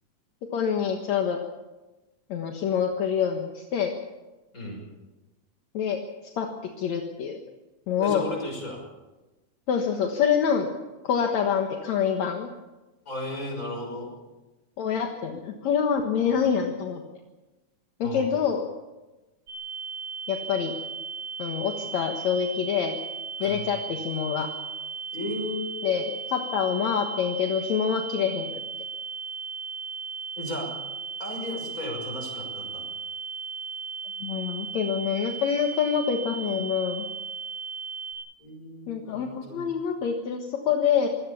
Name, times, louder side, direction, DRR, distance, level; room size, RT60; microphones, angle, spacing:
voice 1, 0.5-1.4 2.3-3.9 5.7-6.0 6.4-6.5 6.8-7.4 7.9-8.3 9.7-10.7 11.0-12.5 14.8-17.0 18.0-18.7 20.3-20.7 21.4-23.0 23.4-24.5 25.8-26.1 26.3-28.5 34.2-37.1 38.9-41.1, left 7 dB, 70° left, 3 dB, 2.7 m, -26 dB
voice 2, 4.5-4.8 8.0-8.8 13.0-14.1 16.2-16.4 18.0-18.3 23.4-23.7 25.1-25.9 30.4-30.7 31.2-32.8 38.4-39.7, left 1 dB, 25° left, 1 dB, 6.6 m, -35 dB
sound 1, 19.5-38.1, right 5 dB, 45° right, 5.2 m, -36 dB
24.5 x 17.5 x 7.1 m, 1.1 s
omnidirectional pair, 3.4 m